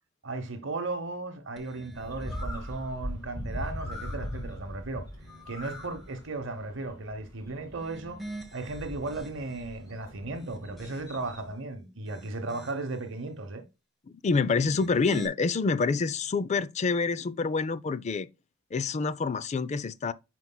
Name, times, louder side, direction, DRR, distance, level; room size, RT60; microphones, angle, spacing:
voice 1, 0.2-5.0 5.5-8.2 8.5-13.6, right 2 dB, 65° right, 0.9 m, -36 dB
sound 1, 1.6-2.9 3.4-4.5 5.0-6.1 7.6-9.8 10.3-11.4 11.9-13.0 14.5-15.3, right 1 dB, ahead, 1.1 m, -46 dB
Bird, 1.9-11.5, left 1 dB, 20° left, 2.5 m, -40 dB
voice 2, 14.2-18.3 18.7-20.1, left 4 dB, 35° left, 0.4 m, -27 dB
9.4 x 4.6 x 2.2 m
head